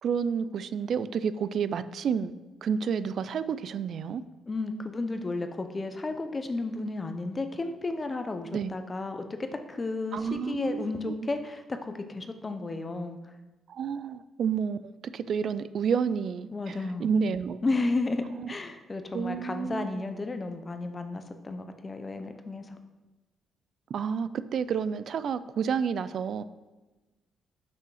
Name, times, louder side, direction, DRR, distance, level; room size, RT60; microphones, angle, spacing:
voice 1, 0.0-2.3 2.6-4.2 8.5-8.7 10.1-11.1 13.7-17.6 18.3-18.5 19.1-19.9 23.9-26.4, right 6 dB, 60° right, 0.3 m, -30 dB
voice 2, 4.5-13.2 16.5-17.2 17.6-22.8, left 3 dB, 25° left, 0.7 m, -33 dB
6.2 x 5.6 x 4.9 m
cardioid pair, 110°, 0 cm